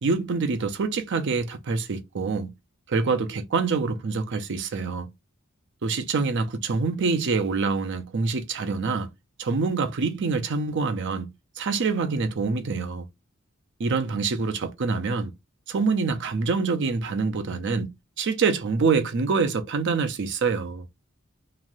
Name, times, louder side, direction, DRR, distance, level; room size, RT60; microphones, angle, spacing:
voice 1, 0.0-2.5 2.9-5.1 5.8-9.1 9.4-11.3 11.6-13.0 13.8-15.3 15.7-17.9 18.2-20.9, right 4 dB, 60° right, 0.5 m, -26 dB
3.0 x 2.4 x 2.6 m
head